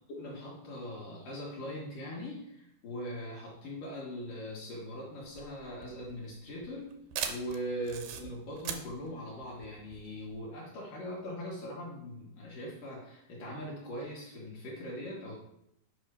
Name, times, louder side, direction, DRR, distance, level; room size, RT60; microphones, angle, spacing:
voice 1, 0.1-7.0 7.3-15.3, equal, 65° left, -3 dB, 2.3 m, -41 dB
sound 1, 5.2-10.4, right 8 dB, 90° right, 2.1 m, -41 dB
8.9 x 5.5 x 4.6 m, 0.80 s
omnidirectional pair, 5.5 m